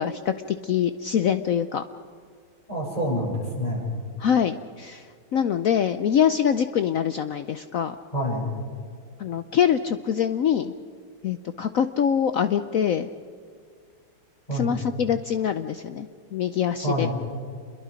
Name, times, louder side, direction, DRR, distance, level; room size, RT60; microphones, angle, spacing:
voice 1, 0.0-1.8 4.2-5.0 5.3-7.9 9.2-10.7 11.2-13.1 14.5-17.1, left 8 dB, 90° left, 10 dB, 0.7 m, -24 dB
voice 2, 2.7-3.9 8.1-8.5 14.5-14.8 16.8-17.1, equal, 20° left, -4 dB, 7.8 m, -27 dB
28.5 x 22.0 x 5.2 m, 2.2 s
omnidirectional pair, 2.3 m